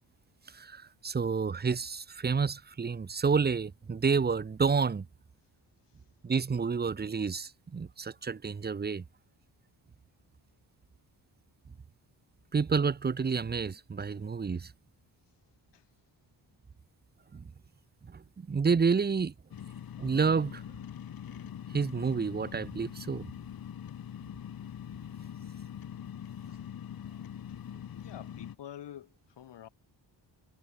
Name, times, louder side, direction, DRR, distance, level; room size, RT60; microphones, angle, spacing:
voice 1, 0.5-5.1 6.2-9.0 12.5-14.7 17.3-17.5 18.0-19.3 20.0-20.6 21.7-23.3, right 5 dB, 25° right, 1.0 m, -29 dB
sound 1, 19.5-28.6, left 9 dB, 55° left, 3.4 m, -43 dB
voice 2, 27.9-29.7, left 11 dB, 80° left, 6.6 m, -47 dB
wide cardioid pair, 175°, 41 cm